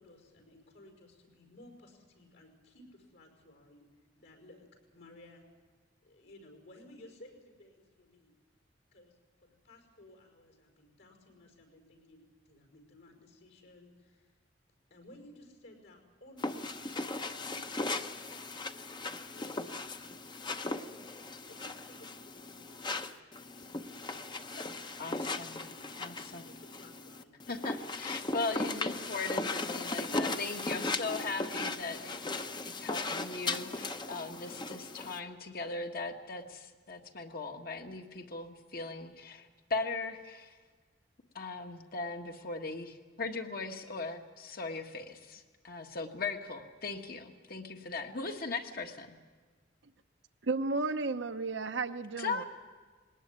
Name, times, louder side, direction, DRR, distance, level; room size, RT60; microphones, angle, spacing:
voice 1, 0.0-3.9 4.2-4.7 4.9-5.4 6.0-8.3 8.9-14.4 14.9-17.1 17.4-18.3 19.3-20.1 21.5-24.7 25.2-28.2, left 1 dB, 70° left, 4 dB, 5.4 m, -57 dB
sound 1, 16.4-35.2, left 2 dB, 25° left, 0.8 m, -37 dB
voice 2, 25.0-25.6 26.0-26.4 27.5-40.5 41.3-49.2 52.2-52.4, left 3 dB, 55° left, 5 dB, 1.6 m, -39 dB
voice 3, 50.4-52.4, right 3 dB, 70° right, 10 dB, 0.8 m, -33 dB
20.0 x 18.5 x 9.4 m, 1.5 s
head